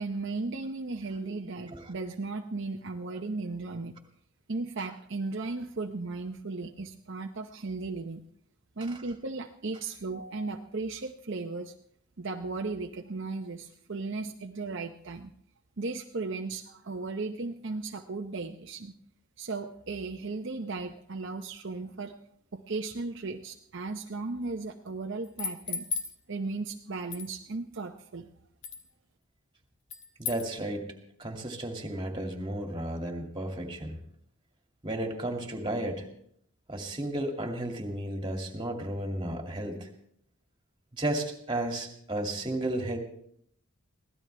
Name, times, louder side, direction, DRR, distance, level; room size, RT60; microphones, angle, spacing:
voice 1, 0.0-4.0 4.5-8.2 8.8-11.7 12.2-15.3 15.8-19.0 19.4-22.2 22.5-25.9 26.3-28.3, right 3 dB, 55° right, 3 dB, 0.8 m, -36 dB
sound 1, 25.2-26.1 27.1-27.3 28.6-28.8 29.9-30.5, left 6 dB, 60° left, 2.1 m, -34 dB
voice 2, 30.2-30.9 31.2-34.0 34.8-36.1 36.7-39.9 40.9-43.0, right 1 dB, 20° right, 3 dB, 2.3 m, -33 dB
23.5 x 17.0 x 3.4 m, 0.69 s
head